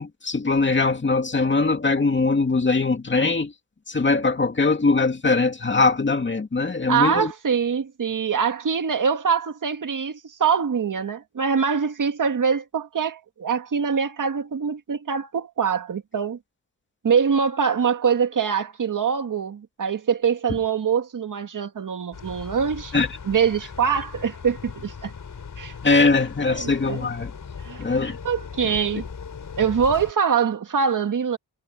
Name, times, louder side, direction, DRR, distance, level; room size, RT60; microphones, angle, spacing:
voice 1, 0.0-3.5 3.9-7.3 22.9-23.1 25.8-27.3 27.8-28.2, left 3 dB, 30° left, 2.4 m, -21 dB
voice 2, 6.9-16.4 17.0-22.9 23.2-25.1 25.6-25.7 26.0-26.2 26.5-27.1 27.6-29.1 29.6-31.4, right 6 dB, 60° right, 2.0 m, -24 dB
sound 1, 22.1-30.1, left 6 dB, 60° left, 5.6 m, -38 dB
wide cardioid pair, 115°, 36 cm